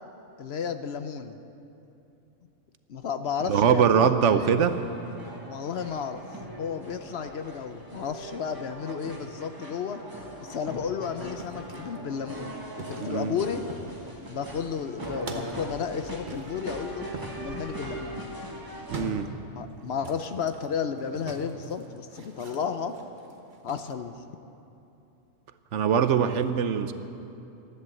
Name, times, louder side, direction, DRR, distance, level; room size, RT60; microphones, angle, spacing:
voice 1, 0.4-1.4 2.9-4.1 4.4-4.5 5.5-6.2 6.6-10.0 10.4-13.6 14.3-17.1 17.4-18.3 19.5-22.9 23.6-24.1, left 6 dB, 60° left, 9 dB, 0.9 m, -33 dB
voice 2, 3.5-4.8 13.0-13.4 18.9-19.3 25.7-26.9, right 7 dB, 70° right, 10 dB, 1.0 m, -22 dB
sound 1, 4.6-19.0, right 1 dB, 15° right, 1.6 m, -40 dB
sound 2, 10.7-12.0 12.8-14.1 14.4-15.6 16.3-23.9, right 1 dB, 40° right, 1.3 m, -43 dB
13.0 x 11.5 x 7.7 m, 2.9 s
omnidirectional pair, 1.3 m